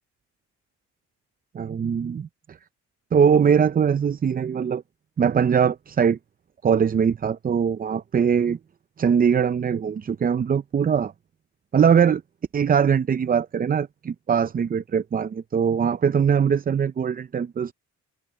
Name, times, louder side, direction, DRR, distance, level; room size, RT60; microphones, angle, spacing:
voice 1, 1.5-2.6 3.1-4.8 5.2-6.2 6.6-8.6 9.0-11.1 11.7-12.2 12.5-17.7, right 7 dB, 30° right, 0.5 m, -21 dB
cardioid pair, 90°, 30 cm